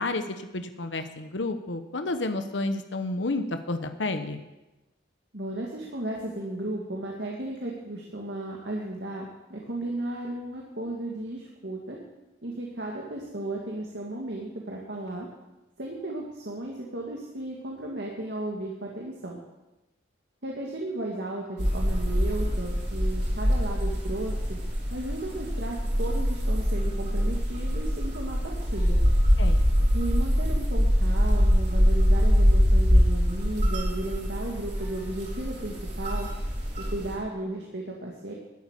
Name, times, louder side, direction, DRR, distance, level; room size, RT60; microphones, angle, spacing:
voice 1, 0.0-4.4 29.4-29.6, left 2 dB, 75° left, 8 dB, 1.0 m, -30 dB
voice 2, 5.3-12.0 12.4-15.3 15.8-19.4 20.4-24.6 24.9-29.0 29.9-36.3 36.8-38.3, right 1 dB, 60° right, -2 dB, 2.3 m, -35 dB
sound 1, 21.6-37.2, equal, 40° right, 4.6 m, -24 dB
13.5 x 8.4 x 10.0 m, 1.0 s
head